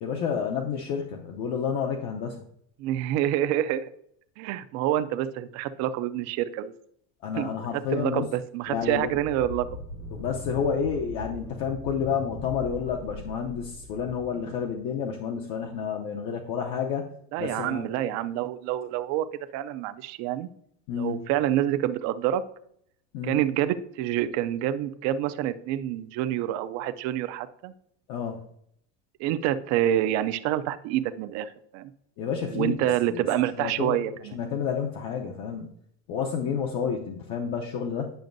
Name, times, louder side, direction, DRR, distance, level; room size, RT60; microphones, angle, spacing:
voice 1, 0.0-2.4 7.2-8.2 8.7-9.1 10.1-17.0 17.4-17.9 20.9-21.2 23.1-23.4 28.1-28.4 32.2-33.3 33.6-34.0 34.3-35.7 36.1-38.1, left 7 dB, 55° left, 1 dB, 0.7 m, -30 dB
voice 2, 2.8-3.9 4.4-6.7 7.4-7.5 7.9-9.7 17.3-19.3 19.5-20.5 20.9-22.4 23.2-27.7 29.2-31.9 32.5-34.4, right 12 dB, 50° right, 11 dB, 0.5 m, -27 dB
sound 1, 8.6-15.1, left 2 dB, 80° left, 2.3 m, -40 dB
9.1 x 6.0 x 2.6 m, 0.69 s
cardioid pair, 170°, 34 cm